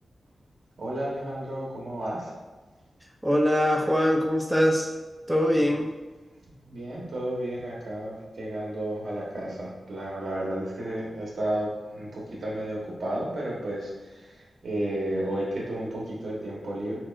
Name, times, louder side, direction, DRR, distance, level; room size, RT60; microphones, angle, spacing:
voice 1, 0.8-2.3 5.5-5.6 6.6-17.0, right 1 dB, 65° right, -4 dB, 1.2 m, -32 dB
voice 2, 3.2-4.9 5.3-5.9, equal, 5° right, 0 dB, 0.3 m, -22 dB
6.1 x 2.4 x 2.4 m, 1.2 s
wide cardioid pair, 125°, 0 cm